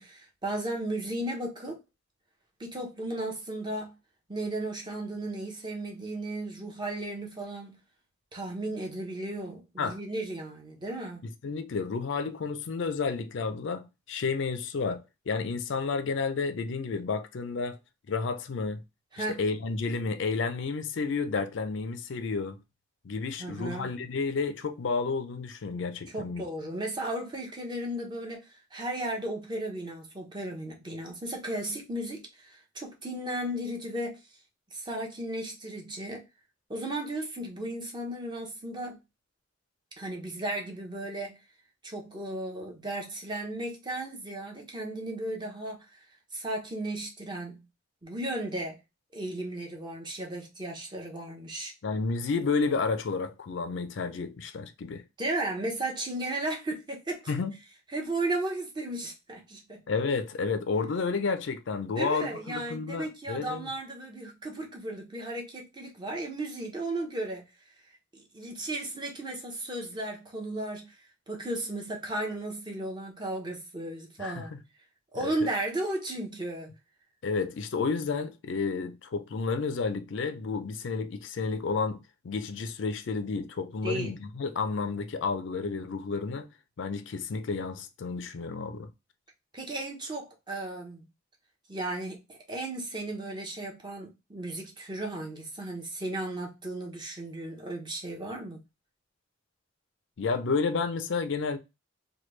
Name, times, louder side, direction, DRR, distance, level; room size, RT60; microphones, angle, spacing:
voice 1, 0.0-1.8 2.6-3.9 4.3-7.8 8.3-11.2 19.1-19.4 23.4-23.9 26.1-34.2 34.7-36.2 36.7-39.0 40.0-41.4 41.8-45.9 46.3-47.7 48.0-48.8 49.1-51.7 55.2-57.3 57.9-59.8 62.0-67.4 68.1-70.9 71.3-74.5 75.1-76.7 83.8-84.1 89.5-91.0 91.7-98.6, right 1 dB, 25° right, 0.8 m, -35 dB
voice 2, 11.4-17.8 18.1-18.8 19.2-22.6 23.0-26.5 51.8-55.0 57.3-57.5 59.9-63.7 74.2-74.5 75.2-75.3 77.2-86.5 86.8-88.9 100.2-101.6, left 4 dB, 65° left, 0.4 m, -31 dB
3.1 x 2.2 x 3.1 m
head